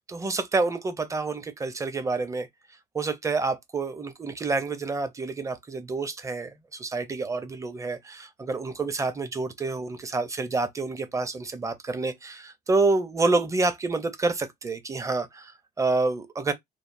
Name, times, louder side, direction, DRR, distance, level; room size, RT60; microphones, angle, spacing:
voice 1, 0.0-2.5 2.9-16.5, right 3 dB, 20° right, 0.5 m, -28 dB
3.2 x 2.0 x 2.5 m
cardioid pair, 110°, 17 cm